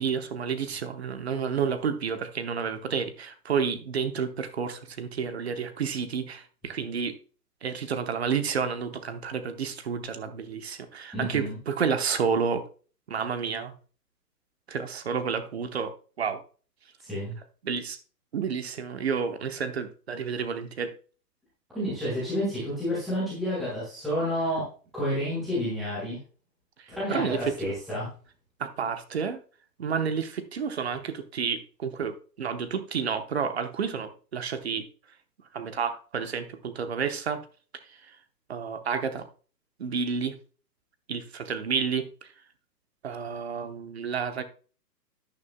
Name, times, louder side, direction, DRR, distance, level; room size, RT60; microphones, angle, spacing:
voice 1, 0.0-7.2 7.6-12.6 13.1-13.7 14.7-15.9 16.2-16.4 17.6-18.0 18.3-20.9 26.8-27.7 28.6-29.4 29.8-34.8 35.5-37.4 37.9-38.2 38.5-39.3 39.8-40.3 41.1-42.3 43.0-44.4, right 6 dB, 40° right, 0.9 m, -30 dB
voice 2, 11.1-11.6 17.0-17.3 21.7-24.7 24.9-26.2 26.9-28.1, equal, ahead, 0.5 m, -30 dB
11.0 x 10.0 x 2.2 m
hypercardioid pair, 165°, 49 cm